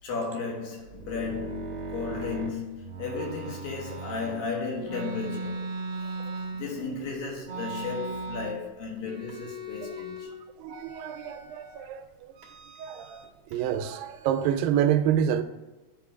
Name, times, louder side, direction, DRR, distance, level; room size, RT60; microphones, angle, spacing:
voice 1, 0.0-5.7 6.0-6.1 6.5-10.3, left 4 dB, 80° left, 3.3 m, -34 dB
sound 1, 0.8-4.4 4.8-7.0 7.4-8.7 9.0-10.3 10.7-11.8 12.4-13.3 13.5-14.7, right 2 dB, 55° right, 1.7 m, -38 dB
voice 2, 10.6-12.3 12.8-15.4, right 9 dB, 85° right, 2.3 m, -28 dB
9.4 x 3.9 x 4.9 m
omnidirectional pair, 4.0 m